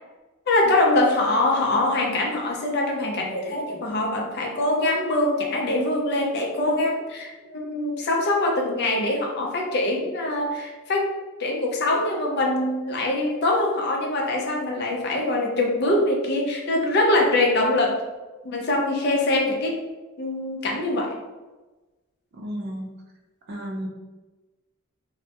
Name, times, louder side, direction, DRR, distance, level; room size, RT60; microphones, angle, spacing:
voice 1, 0.5-11.1 11.4-18.0 18.4-19.8 20.2-21.1, left 2 dB, 50° left, 0 dB, 0.4 m, -23 dB
voice 2, 22.3-22.9 23.5-23.9, equal, 45° right, 0 dB, 0.4 m, -32 dB
2.2 x 2.0 x 2.8 m, 1.2 s
head